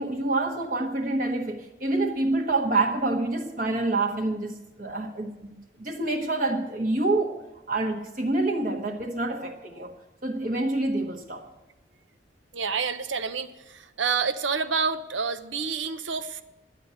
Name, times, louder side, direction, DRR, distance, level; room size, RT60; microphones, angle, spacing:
voice 1, 0.0-9.9 10.2-11.4, right 2 dB, 45° right, 1 dB, 1.3 m, -27 dB
voice 2, 12.5-16.4, right 5 dB, 85° right, 10 dB, 0.8 m, -28 dB
11.5 x 8.3 x 8.9 m, 1.0 s
head